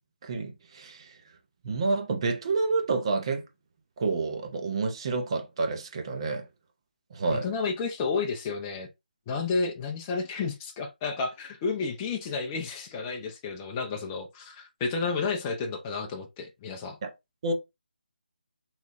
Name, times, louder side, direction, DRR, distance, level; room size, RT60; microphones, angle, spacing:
voice 1, 0.2-1.2 1.6-3.5 4.0-6.5 7.1-7.5 17.0-17.1 17.4-17.5, right 3 dB, 35° right, 0.6 m, -29 dB
voice 2, 7.3-8.9 9.3-17.0, left 4 dB, 20° left, 0.4 m, -31 dB
3.1 x 2.2 x 4.1 m
figure-of-eight pair, 155°, 5 cm